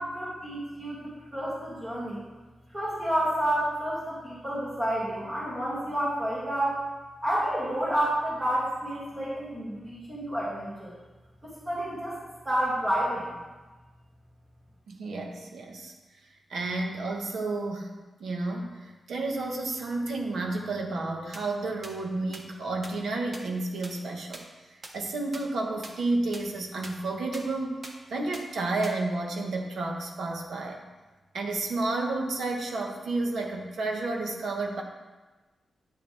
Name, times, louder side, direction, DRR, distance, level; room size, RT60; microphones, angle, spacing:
voice 1, 0.0-2.2 2.7-6.8 7.2-10.9 11.4-12.2 12.4-13.2, right 1 dB, 20° right, -8 dB, 2.6 m, -30 dB
voice 2, 14.9-15.9 16.5-24.5 24.9-27.8 28.1-30.8 31.3-34.8, right 2 dB, 80° right, 2 dB, 1.4 m, -31 dB
sound 1, 21.3-21.4 21.8-21.9 22.3-22.4 22.8-22.9 23.3-23.4 23.8-23.9 24.3-24.4 24.8-24.9 25.3-25.4 25.8-25.9 26.3-26.4 26.8-26.9 27.3-27.4 27.8-27.9 28.3-28.4 28.8-28.9, right 2 dB, 40° right, 1.2 m, -41 dB
9.9 x 9.7 x 3.5 m, 1.2 s
wide cardioid pair, 145°, 0 cm